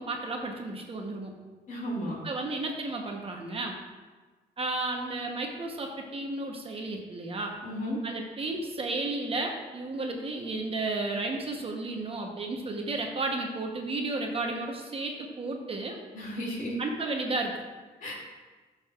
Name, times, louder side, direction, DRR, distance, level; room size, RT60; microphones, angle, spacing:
voice 1, 0.0-1.3 2.2-3.8 4.6-7.6 8.0-16.0 16.8-17.6, right 2 dB, 35° right, 2 dB, 0.9 m, -33 dB
voice 2, 1.7-2.2 7.6-8.0 16.1-16.7 18.0-18.1, left 1 dB, 50° left, -3 dB, 2.5 m, -34 dB
13.0 x 6.6 x 2.4 m, 1.3 s
wide cardioid pair, 155°, 17 cm